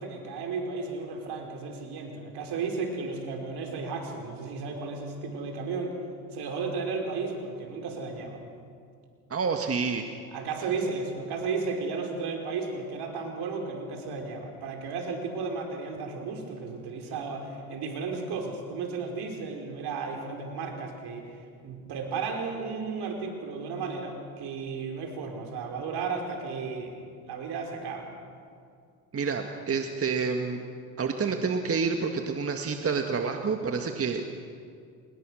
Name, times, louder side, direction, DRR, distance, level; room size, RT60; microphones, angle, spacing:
voice 1, 0.0-6.0 6.3-8.4 10.3-21.3 21.6-27.0 27.2-28.1, right 4 dB, 60° right, 2 dB, 5.1 m, -34 dB
voice 2, 9.3-10.1 29.1-30.6 31.0-34.3, right 5 dB, 30° right, 4 dB, 1.9 m, -28 dB
28.0 x 21.5 x 6.5 m, 2.3 s
hypercardioid pair, 65°, 44 cm